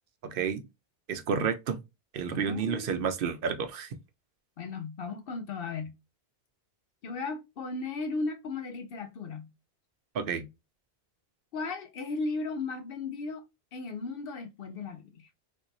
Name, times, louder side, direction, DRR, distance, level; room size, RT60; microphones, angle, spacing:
voice 1, 0.2-0.6 1.1-1.8 2.1-3.9 10.1-10.5, right 6 dB, 65° right, 0.7 m, -30 dB
voice 2, 2.3-2.9 4.6-5.9 7.0-9.5 11.5-13.4 13.7-15.3, left 3 dB, 65° left, 0.7 m, -36 dB
3.4 x 2.9 x 2.5 m
omnidirectional pair, 1.1 m